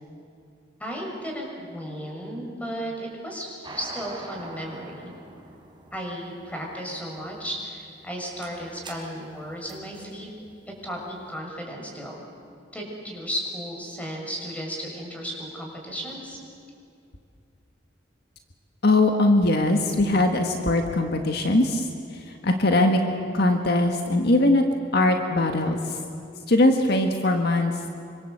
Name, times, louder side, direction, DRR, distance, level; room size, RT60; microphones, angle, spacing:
voice 1, 0.8-5.1 5.9-10.3 10.8-12.2 12.7-16.4, equal, 10° left, -1 dB, 6.3 m, -34 dB
sound 1, 3.6-11.2, right 2 dB, 25° right, 3.9 m, -44 dB
voice 2, 18.8-23.0 23.3-24.6 24.9-26.0 26.5-27.9, left 2 dB, 60° left, 4 dB, 1.7 m, -21 dB
26.5 x 25.0 x 8.0 m, 2.6 s
head